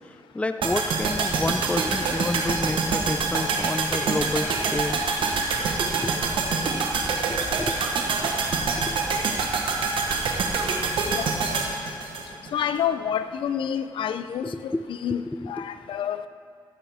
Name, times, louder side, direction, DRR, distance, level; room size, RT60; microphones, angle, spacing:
voice 1, 0.3-5.0 6.0-6.1 7.3-7.8 8.2-8.3 8.9-9.0 14.4-14.8 15.6-15.7, left 2 dB, 15° left, 9 dB, 0.5 m, -29 dB
sound 1, 0.6-12.8 13.1-13.2, right 4 dB, 80° right, 1.2 m, -26 dB
voice 2, 12.5-16.3, left 9 dB, 85° left, 12 dB, 0.5 m, -28 dB
16.0 x 8.7 x 3.5 m, 2.3 s
cardioid pair, 50°, 8 cm